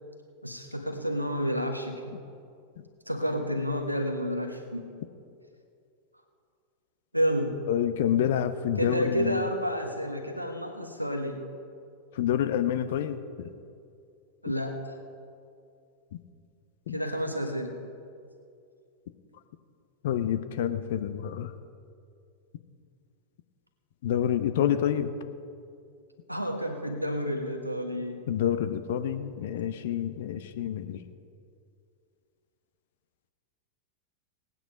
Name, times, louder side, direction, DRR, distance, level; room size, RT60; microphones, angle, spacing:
voice 1, 0.4-2.0 3.1-4.9 7.1-7.6 8.8-11.4 14.4-14.9 16.9-17.8 26.3-28.2, equal, 90° right, 3 dB, 1.3 m, -30 dB
voice 2, 7.7-9.5 12.2-13.5 16.9-17.0 20.0-21.5 24.0-25.1 28.3-31.0, left 10 dB, 55° left, 11 dB, 0.7 m, -28 dB
18.0 x 9.2 x 5.2 m, 2.4 s
figure-of-eight pair, 90°, 0 cm